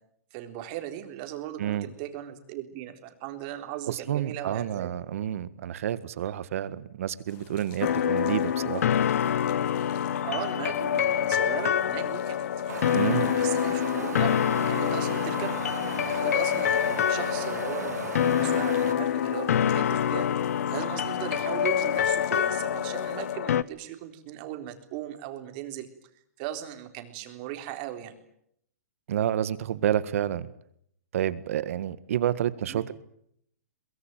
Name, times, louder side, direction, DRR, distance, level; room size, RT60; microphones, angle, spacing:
voice 1, 0.3-4.9 10.2-12.8 13.4-15.6 16.1-20.3 20.7-25.9 26.4-28.1 32.7-32.8, right 12 dB, 35° right, 6 dB, 3.8 m, -38 dB
voice 2, 3.9-8.9 12.9-13.3 29.1-30.5 31.1-32.9, right 10 dB, 55° right, 15 dB, 1.7 m, -29 dB
sound 1, 7.3-23.3, left 8 dB, 30° left, 3.4 m, -52 dB
sound 2, 7.8-23.6, left 9 dB, 65° left, 0.9 m, -26 dB
Wind, 12.7-18.9, right 8 dB, 85° right, 2.0 m, -37 dB
23.0 x 22.0 x 9.2 m, 0.71 s
hypercardioid pair, 155°, 9 cm